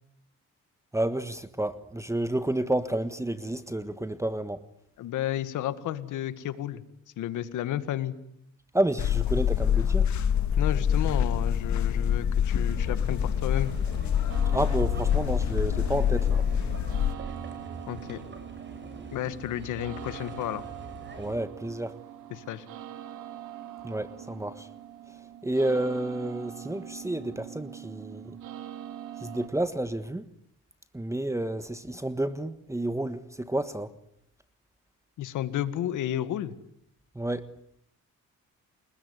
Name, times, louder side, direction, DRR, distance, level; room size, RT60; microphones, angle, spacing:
voice 1, 0.9-4.6 8.7-10.1 14.5-16.5 21.2-22.0 23.8-24.7 25.4-28.4 29.2-30.3 30.9-33.9 37.1-37.5, right 1 dB, 10° right, 1.5 m, -30 dB
voice 2, 5.0-6.8 7.2-8.2 10.6-13.7 17.9-18.2 19.1-20.6 22.3-22.7 35.2-36.5, left 12 dB, 85° left, 1.9 m, -32 dB
sound 1, 9.0-17.1, left 8 dB, 70° left, 1.7 m, -25 dB
sound 2, 12.7-21.4, right 3 dB, 40° right, 7.6 m, -44 dB
sound 3, 14.3-29.5, right 11 dB, 85° right, 3.3 m, -43 dB
30.0 x 20.5 x 9.6 m
cardioid pair, 90°, 30 cm